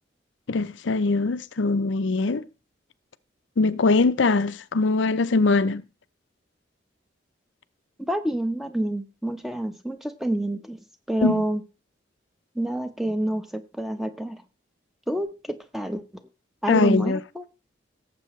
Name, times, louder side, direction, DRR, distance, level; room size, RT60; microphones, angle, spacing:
voice 1, 0.5-2.4 3.6-5.8 11.2-11.4 16.7-17.2, left 3 dB, 85° left, 0.6 m, -22 dB
voice 2, 8.0-10.8 11.1-11.6 12.5-14.4 15.1-16.0 16.6-17.4, right 1 dB, ahead, 0.9 m, -28 dB
17.5 x 7.6 x 3.2 m
head